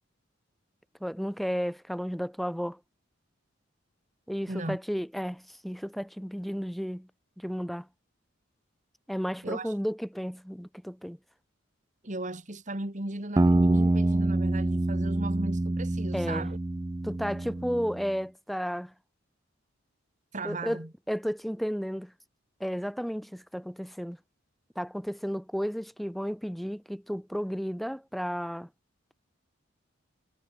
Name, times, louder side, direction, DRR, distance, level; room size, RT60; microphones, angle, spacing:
voice 1, 1.0-2.8 4.3-7.1 7.4-7.9 9.1-11.2 16.1-16.5 17.0-18.9 20.4-22.1 22.6-24.2 24.8-28.7, equal, ahead, 4.4 m, -33 dB
voice 2, 4.5-4.8 9.4-9.7 12.0-16.6 20.3-20.9, right 2 dB, 40° right, 2.6 m, -36 dB
sound 1, 13.4-18.0, right 2 dB, 15° right, 0.4 m, -26 dB
head